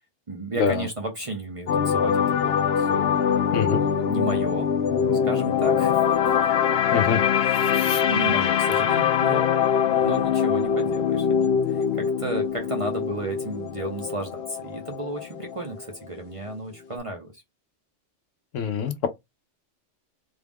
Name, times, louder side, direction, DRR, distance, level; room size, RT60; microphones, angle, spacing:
voice 1, 0.3-4.7 5.2-6.1 7.4-17.4, right 2 dB, 35° right, 0.6 m, -34 dB
space rez reverbed, 1.7-15.8 16.1-16.4, left 8 dB, 65° left, 0.7 m, -23 dB
voice 2, 18.5-19.1, left 7 dB, 80° left, 1.0 m, -24 dB
3.6 x 2.4 x 3.4 m
omnidirectional pair, 1.3 m